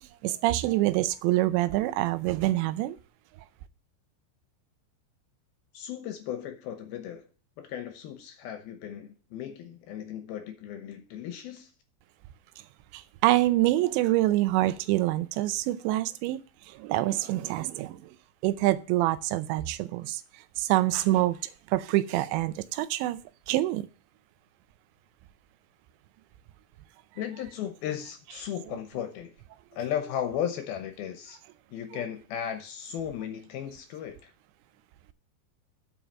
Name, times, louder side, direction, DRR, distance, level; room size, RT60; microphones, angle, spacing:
voice 1, 0.2-3.0 12.9-16.4 16.7-18.1 18.4-20.2 20.6-23.2 23.5-23.9, right 16 dB, 85° right, 2.9 m, -26 dB
voice 2, 5.7-7.3 7.6-11.7 27.2-29.3 29.7-31.4 31.7-34.3, left 9 dB, 75° left, 2.5 m, -36 dB
9.0 x 5.0 x 7.3 m
omnidirectional pair, 5.1 m